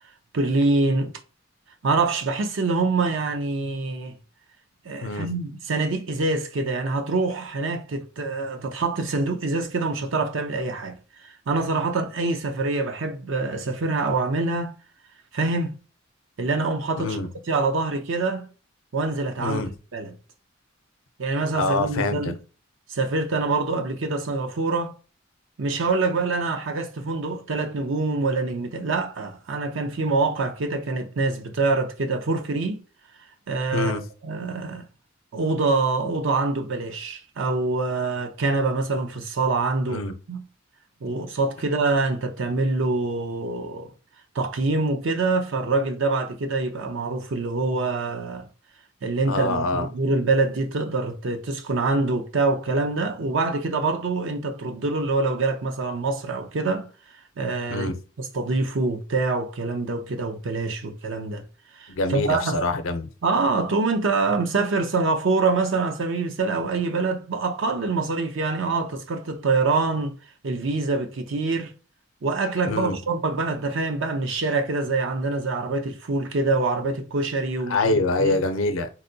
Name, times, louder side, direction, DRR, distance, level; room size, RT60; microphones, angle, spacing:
voice 1, 0.3-1.1 1.8-4.1 4.8-14.7 15.3-15.8 16.4-18.5 18.9-19.6 19.9-20.1 21.2-22.4 22.9-25.0 25.6-32.8 33.5-33.9 34.2-34.8 35.3-40.4 41.0-43.9 44.3-48.5 49.0-56.9 57.4-61.4 61.7-62.6 63.2-70.1 70.4-71.7 72.2-78.4, right 3 dB, 65° right, 0.6 m, -25 dB
voice 2, 17.0-17.3 19.4-19.7 21.5-22.3 33.7-34.0 39.9-40.1 49.3-49.9 57.7-57.9 62.0-63.1 72.7-73.0 77.7-78.9, left 2 dB, 85° left, 0.6 m, -25 dB
4.0 x 2.1 x 2.7 m
head